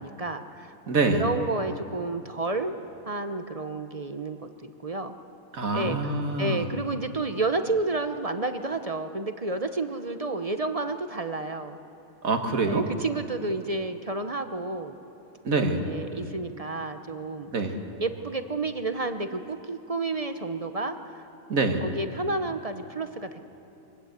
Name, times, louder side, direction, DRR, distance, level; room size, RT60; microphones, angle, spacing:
voice 1, 0.0-0.7 1.1-2.7 3.1-5.1 5.7-6.0 6.4-11.8 12.6-15.0 15.6-17.5 18.0-21.3 21.8-23.4, right 3 dB, 30° right, 8 dB, 0.8 m, -31 dB
voice 2, 0.9-1.2 5.5-6.7 12.2-12.9 15.5-15.8 17.5-17.8 21.5-21.8, right 3 dB, 75° right, 5 dB, 2.1 m, -25 dB
25.0 x 19.5 x 8.1 m, 3.0 s
omnidirectional pair, 1.4 m